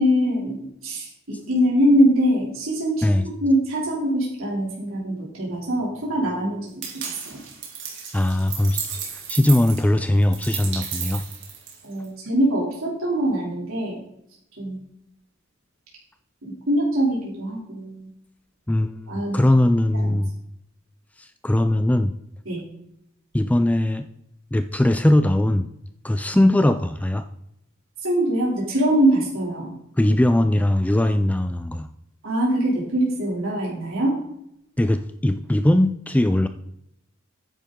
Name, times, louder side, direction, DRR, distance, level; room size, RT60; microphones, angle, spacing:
voice 1, 0.0-3.0 3.4-7.4 11.8-14.0 14.6-14.8 16.4-18.1 19.1-19.4 19.9-20.1 22.4-22.6 28.0-29.7 32.2-34.1, equal, 80° right, -4 dB, 3.0 m, -23 dB
sound 1, 6.8-12.0, right 7 dB, 60° right, 2.7 m, -33 dB
voice 2, 8.1-8.8 9.1-11.2 18.7-20.3 21.2-22.1 23.3-24.1 24.5-25.7 26.0-27.3 30.0-31.9 34.8-36.5, left 1 dB, 5° left, 10 dB, 0.3 m, -20 dB
10.0 x 9.2 x 3.7 m, 0.77 s
head